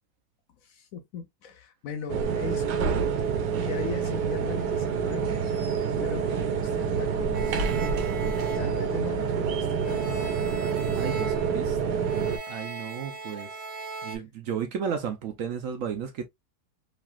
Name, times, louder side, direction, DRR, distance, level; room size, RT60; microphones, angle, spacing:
voice 1, 0.6-2.9 3.6-5.5 6.0-7.6 8.5-10.3, left 6 dB, 70° left, 0.9 m, -38 dB
sound 1, 2.1-12.4, right 6 dB, 90° right, 1.3 m, -27 dB
sound 2, 7.3-9.5 9.8-14.2, right 3 dB, 50° right, 1.2 m, -40 dB
voice 2, 10.9-12.0 12.5-13.6 14.0-16.3, right 7 dB, 65° right, 0.9 m, -33 dB
3.2 x 2.6 x 2.2 m
omnidirectional pair, 1.7 m